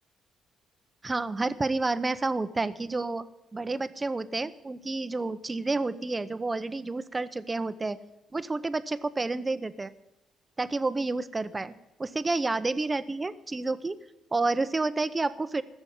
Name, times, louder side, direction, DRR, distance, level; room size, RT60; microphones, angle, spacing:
voice 1, 1.0-3.3 3.5-8.0 8.3-9.9 10.6-11.7 12.0-14.0 14.3-15.6, right 3 dB, 25° right, 13 dB, 0.8 m, -29 dB
15.5 x 7.0 x 9.8 m, 1.0 s
cardioid pair, 90°, 0 cm